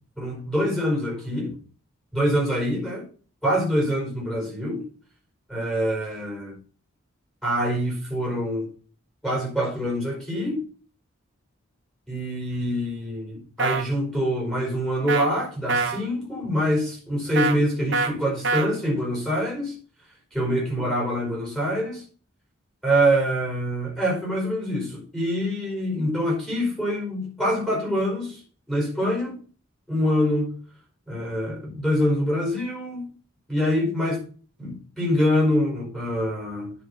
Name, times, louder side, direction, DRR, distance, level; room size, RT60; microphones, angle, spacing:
voice 1, 0.2-1.6 2.1-3.0 3.4-4.9 5.5-6.6 7.4-8.7 9.2-10.6 12.1-19.8 20.3-22.0 22.8-28.4 28.7-29.4 29.9-30.5 31.1-33.1 33.5-34.2 34.6-36.7, equal, 5° left, 4.9 m, -25 dB
sound 1, 13.6-13.8 15.1-15.3 15.7-16.0 17.4-17.6 17.9-18.1 18.4-18.7, right 4 dB, 55° right, 1.5 m, -24 dB
10.5 x 6.7 x 5.8 m
head